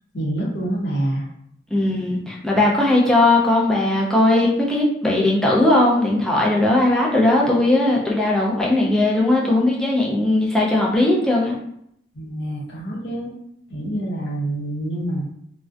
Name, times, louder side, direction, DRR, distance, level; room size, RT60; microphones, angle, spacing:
voice 1, 0.1-1.3 12.1-13.3 13.7-15.2, right 1 dB, 70° left, -3 dB, 0.7 m, -26 dB
voice 2, 1.7-11.5, left 2 dB, 5° left, -4 dB, 0.4 m, -18 dB
2.4 x 2.1 x 2.5 m, 0.73 s
head